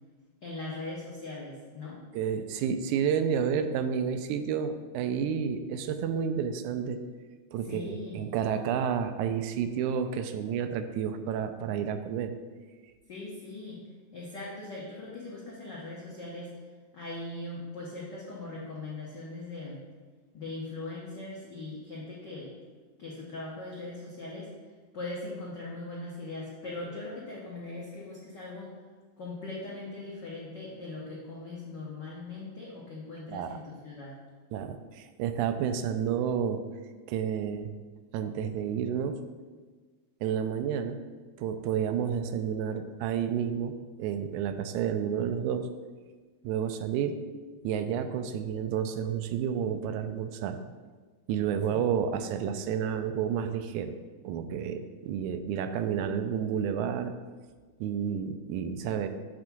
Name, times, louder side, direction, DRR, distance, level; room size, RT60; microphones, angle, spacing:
voice 1, 0.4-2.0 7.6-8.2 13.1-13.8 14.1-16.5 16.9-19.8 20.3-22.5 23.0-24.5 24.9-28.7 29.2-34.2 51.7-51.8, left 2 dB, 85° left, -5 dB, 0.9 m, -40 dB
voice 2, 2.1-7.0 7.5-12.3 33.3-33.6 34.5-36.6 37.1-37.7 38.1-39.2 40.2-41.0 41.4-45.7 46.4-47.2 47.6-50.6 51.3-53.9 54.2-57.1 57.8-59.1, right 8 dB, 85° right, 8 dB, 2.0 m, -30 dB
7.6 x 3.5 x 5.9 m, 1.4 s
omnidirectional pair, 3.4 m